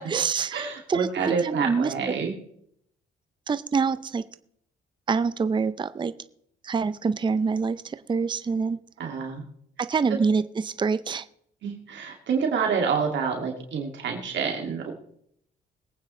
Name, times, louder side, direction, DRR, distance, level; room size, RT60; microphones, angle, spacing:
voice 1, 0.0-2.1 3.5-4.2 5.1-6.1 6.6-8.8 9.8-11.3, right 5 dB, 25° right, 13 dB, 0.5 m, -26 dB
voice 2, 0.5-2.3 9.0-9.4 11.6-14.9, right 6 dB, 65° right, 1 dB, 2.3 m, -28 dB
21.0 x 9.1 x 3.2 m, 0.69 s
cardioid pair, 90°, 20 cm